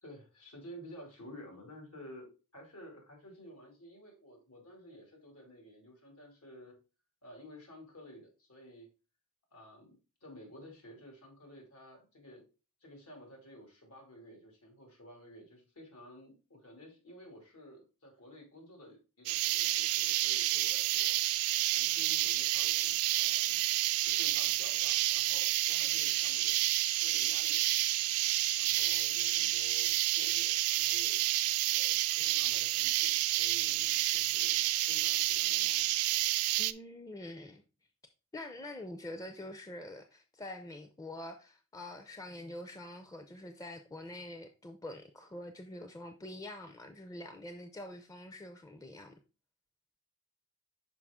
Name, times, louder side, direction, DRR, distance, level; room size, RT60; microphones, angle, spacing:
voice 1, 0.0-6.8 7.2-8.9 9.5-12.4 12.8-21.5 21.8-23.6 24.0-26.6 26.9-27.9 28.3-31.2 31.7-34.6 34.9-35.9, equal, 90° left, 1 dB, 2.5 m, -53 dB
sound 1, 19.3-36.7, right 16 dB, 80° right, 0.4 m, -29 dB
voice 2, 36.6-37.6 38.3-49.1, left 1 dB, 15° left, 6 dB, 0.4 m, -45 dB
6.0 x 4.7 x 3.5 m, 0.32 s
head